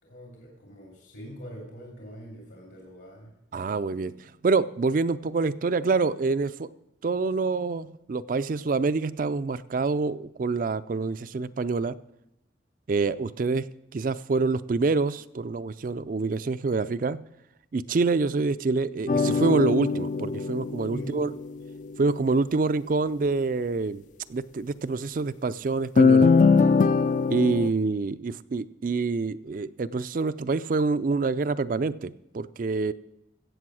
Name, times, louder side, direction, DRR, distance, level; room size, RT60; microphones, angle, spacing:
voice 1, 0.0-3.3 20.9-21.2, equal, 75° left, -1 dB, 2.8 m, -43 dB
voice 2, 3.5-4.1 4.4-6.7 7.0-12.0 12.9-13.7 13.9-17.2 17.7-21.3 22.0-24.0 24.3-26.3 27.3-32.9, right 3 dB, 45° right, 15 dB, 0.4 m, -26 dB
sound 1, 19.1-21.7 26.0-27.7, left 4 dB, 40° left, 0.4 m, -21 dB
16.0 x 7.8 x 6.2 m, 0.85 s
head